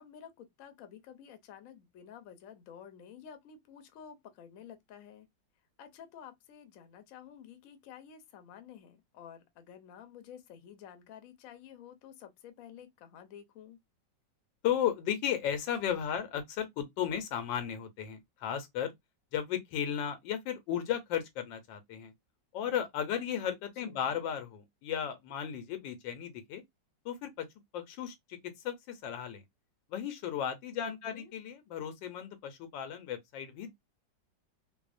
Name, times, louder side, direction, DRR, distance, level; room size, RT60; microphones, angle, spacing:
voice 1, 0.0-5.3 5.8-13.8 23.8-24.2 30.8-31.3, left 9 dB, 65° left, 0.8 m, -51 dB
voice 2, 14.6-18.9 19.3-22.1 22.5-26.6 27.0-27.5 27.7-29.4 29.9-33.7, left 9 dB, 90° left, 1.4 m, -35 dB
3.1 x 2.0 x 2.4 m
omnidirectional pair, 2.0 m